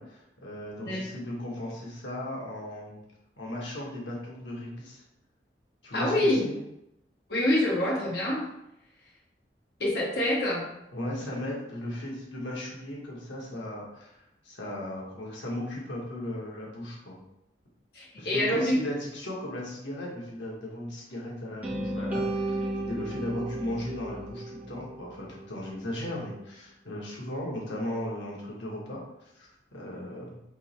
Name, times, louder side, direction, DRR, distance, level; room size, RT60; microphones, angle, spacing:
voice 1, 0.0-3.0 3.4-5.0 5.8-6.6 10.9-14.1 14.4-17.2 18.2-29.0 29.3-30.4, left 1 dB, 85° left, -3 dB, 1.3 m, -36 dB
voice 2, 5.9-6.4 7.3-8.4 9.8-10.6 17.9-18.8, left 1 dB, 60° left, -4 dB, 1.2 m, -26 dB
sound 1, 21.6-25.7, right 1 dB, 10° right, 0.8 m, -34 dB
3.7 x 2.9 x 4.2 m, 0.85 s
head